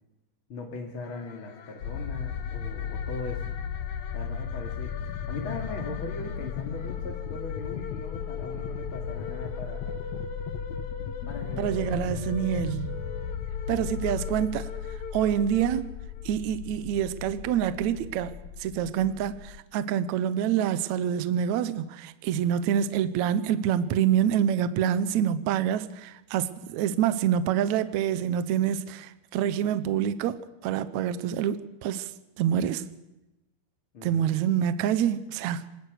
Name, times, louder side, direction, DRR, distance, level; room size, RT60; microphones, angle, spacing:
voice 1, 0.5-3.5 4.1-4.9 5.3-9.9 11.3-12.5 33.9-34.3, left 3 dB, 35° left, 2.9 m, -39 dB
sound 1, 1.0-16.3, left 4 dB, 60° left, 2.2 m, -43 dB
sound 2, 1.8-19.6, left 8 dB, 85° left, 1.5 m, -36 dB
voice 2, 11.6-13.0 13.7-14.7 15.1-16.0 16.3-32.1 32.4-32.8 34.0-35.7, right 9 dB, 75° right, 1.7 m, -26 dB
25.5 x 19.5 x 6.5 m
omnidirectional pair, 4.5 m